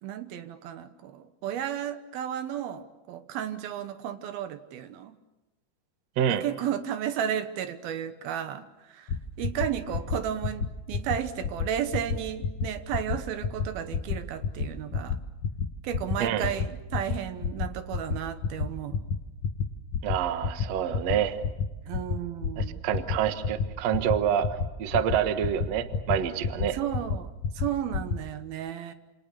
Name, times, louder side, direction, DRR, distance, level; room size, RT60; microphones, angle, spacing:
voice 1, 0.0-5.2 6.3-15.2 15.8-19.0 21.9-22.8 26.7-28.9, right 10 dB, 80° right, 10 dB, 2.9 m, -33 dB
sound 1, 9.1-9.2 9.4-9.7 9.9-10.2 10.4-10.7 10.9-11.2 11.4-11.7 11.9-12.2 12.4-12.7 12.9-13.2 13.4-13.7 13.9-14.2 14.4-14.7 14.9-15.2 15.4-15.7 15.9-16.2 16.4-16.7 16.9-17.2 17.4-17.7 17.9-18.2 18.4-18.7 18.9-19.2 19.4-19.7 19.9-20.1 20.4-20.6 20.9-21.2 21.4-21.7 21.9-22.2 22.4-22.7 22.9-23.2 23.4-23.6 23.9-24.1 24.4-24.7 24.9-25.2 25.4-25.7 25.9-26.2 26.4-26.7 26.9-27.2 27.4-27.7 27.9-28.1, left 6 dB, 60° left, 2.2 m, -28 dB
voice 2, 16.2-16.5 20.0-21.4 22.6-26.8, right 9 dB, 60° right, 9 dB, 2.0 m, -27 dB
28.0 x 27.5 x 6.8 m, 1.0 s
omnidirectional pair, 4.4 m